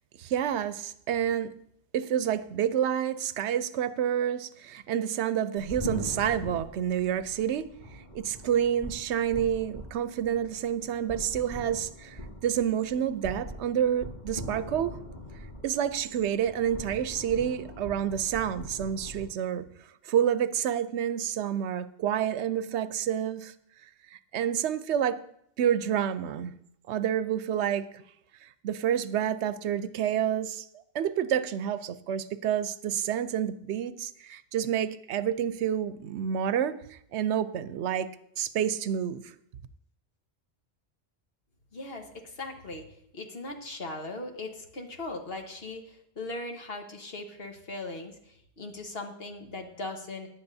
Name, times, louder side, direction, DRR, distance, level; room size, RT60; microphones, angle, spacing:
voice 1, 0.2-1.5 1.9-7.7 8.1-15.0 15.6-19.7 20.0-23.5 24.1-25.2 25.6-26.5 26.9-28.0 28.4-30.7 30.9-38.1 38.4-39.3, right 9 dB, 85° right, 13 dB, 0.9 m, -29 dB
sound 1, 5.5-19.3, equal, 25° left, 4.0 m, -42 dB
voice 2, 41.7-42.1 42.4-42.8 43.1-48.1 48.6-50.3, left 2 dB, 65° left, 3 dB, 1.5 m, -39 dB
17.5 x 10.5 x 2.7 m, 0.73 s
omnidirectional pair, 1.1 m